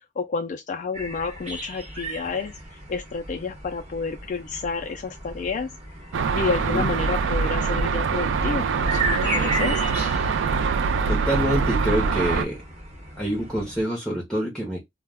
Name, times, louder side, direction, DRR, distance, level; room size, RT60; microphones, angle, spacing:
voice 1, 0.2-2.6 2.9-5.7 6.4-9.0 9.3-9.8, left 4 dB, 40° left, 0.3 m, -29 dB
sound 1, 0.9-13.9, right 1 dB, 35° right, 0.9 m, -35 dB
sound 2, 6.1-12.4, right 5 dB, 90° right, 0.4 m, -24 dB
voice 2, 11.1-12.6 13.2-14.8, equal, 5° left, 0.7 m, -26 dB
2.2 x 2.1 x 3.4 m
head